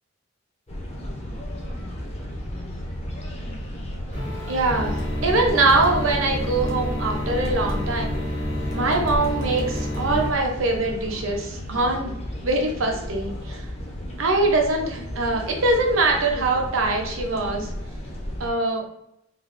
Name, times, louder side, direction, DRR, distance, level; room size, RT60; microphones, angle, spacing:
sound 1, 0.7-18.5, equal, 30° left, 0.5 m, -33 dB
sound 2, 4.1-10.3, left 1 dB, 60° left, 1.1 m, -29 dB
voice 1, 4.5-8.1 8.7-12.1 12.4-13.6 14.2-17.7 18.4-18.8, right 2 dB, 90° right, 2 dB, 0.7 m, -23 dB
sound 3, 5.0-5.1 5.7-5.9 6.7-6.8 7.4-7.8 8.7-10.0, left 1 dB, 85° left, 0.9 m, -37 dB
3.4 x 2.2 x 2.5 m, 0.80 s
head